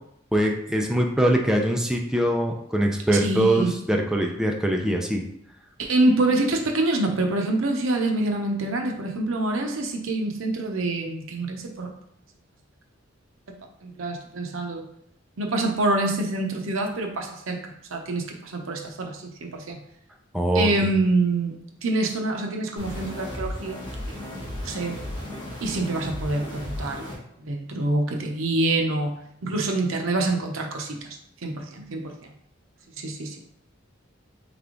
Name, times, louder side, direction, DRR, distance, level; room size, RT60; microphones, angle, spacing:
voice 1, 0.3-5.3 20.3-20.7, right 1 dB, 5° right, 1 dB, 0.4 m, -23 dB
voice 2, 3.1-3.7 5.8-11.9 13.8-14.8 15.4-19.8 20.5-21.5 21.8-23.8 24.1-25.0 25.6-27.0 27.4-32.3 33.0-33.4, right 2 dB, 85° right, 2 dB, 0.7 m, -26 dB
sound 1, 22.8-27.2, left 1 dB, 25° left, 1.4 m, -35 dB
3.4 x 3.3 x 3.8 m, 0.73 s
head